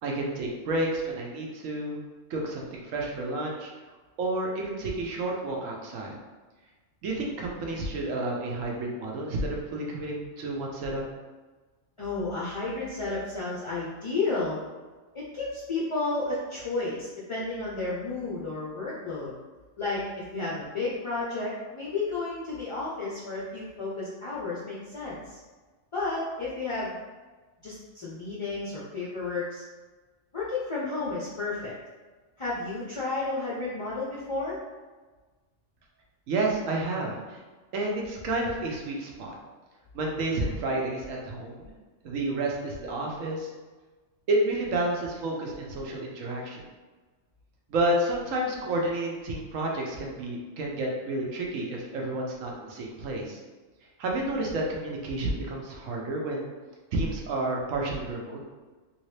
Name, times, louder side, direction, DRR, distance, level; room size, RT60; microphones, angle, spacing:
voice 1, 0.0-2.0 2.3-3.7 4.2-6.1 7.0-11.0 36.3-37.4 37.7-39.4 39.9-41.7 42.0-43.5 44.3-46.6 47.7-53.4 54.0-56.5 56.9-58.4, right 2 dB, 80° right, -1 dB, 1.1 m, -30 dB
voice 2, 12.0-14.6 15.1-19.3 19.8-25.4 25.9-27.0 27.6-29.6 30.3-31.7 32.4-34.6, left 3 dB, 45° left, -6 dB, 0.4 m, -32 dB
3.4 x 2.8 x 3.2 m, 1.3 s
omnidirectional pair, 1.3 m